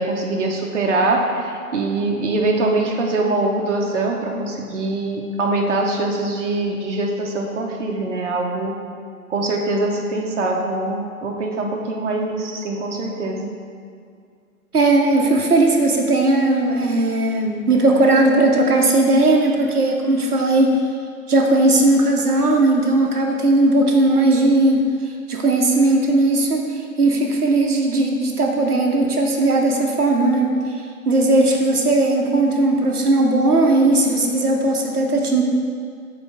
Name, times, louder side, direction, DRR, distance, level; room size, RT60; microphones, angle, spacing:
voice 1, 0.0-8.7 9.3-13.5, right 2 dB, 55° right, 0 dB, 1.0 m, -23 dB
voice 2, 14.7-20.8 21.3-35.4, right 2 dB, 85° right, 1 dB, 1.0 m, -17 dB
5.3 x 4.4 x 5.8 m, 2.2 s
figure-of-eight pair, 135°, 44 cm